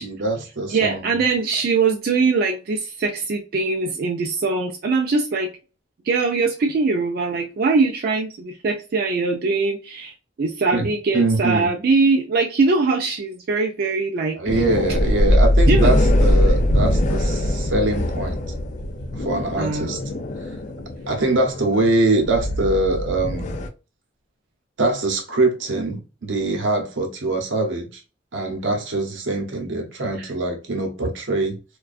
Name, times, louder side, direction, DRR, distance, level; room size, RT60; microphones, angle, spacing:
voice 1, 0.0-1.2 10.7-10.9 11.1-11.7 14.3-18.4 19.1-20.0 21.1-23.6 24.8-28.0 28.3-31.6, right 2 dB, 80° right, 0.8 m, -23 dB
voice 2, 0.7-5.5 6.0-14.6 15.7-15.9 19.6-20.0 30.2-30.3, right 4 dB, 50° right, 0.3 m, -22 dB
sound 1, 14.5-23.7, left 1 dB, 40° left, 0.3 m, -21 dB
2.4 x 2.2 x 2.3 m
head